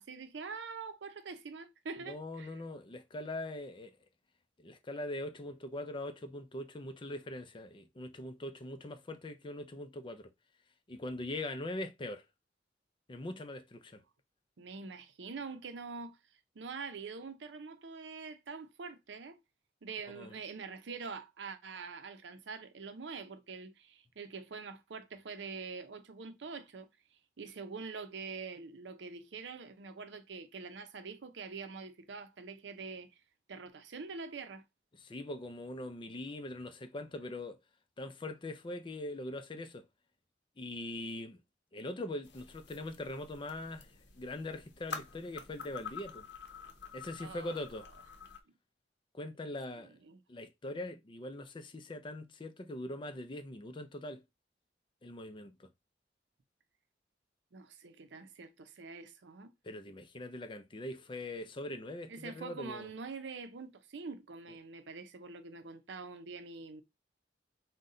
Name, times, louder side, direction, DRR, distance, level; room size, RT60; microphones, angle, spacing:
voice 1, 0.0-2.5 14.6-16.2 16.6-19.4 19.8-26.9 27.4-33.1 33.5-34.6 47.2-47.6 50.0-50.2 57.5-59.5 62.1-66.8, right 4 dB, 85° right, 0.6 m, -45 dB
voice 2, 2.1-3.9 4.6-10.3 10.9-12.3 13.1-14.0 20.1-20.4 35.0-37.6 38.0-39.9 40.6-41.4 41.7-46.3 46.9-47.9 49.1-49.9 50.3-54.2 55.0-55.7 59.6-62.9, left 1 dB, 30° left, 0.5 m, -42 dB
sound 1, 42.2-48.4, left 6 dB, 85° left, 0.7 m, -48 dB
3.9 x 2.2 x 3.7 m
head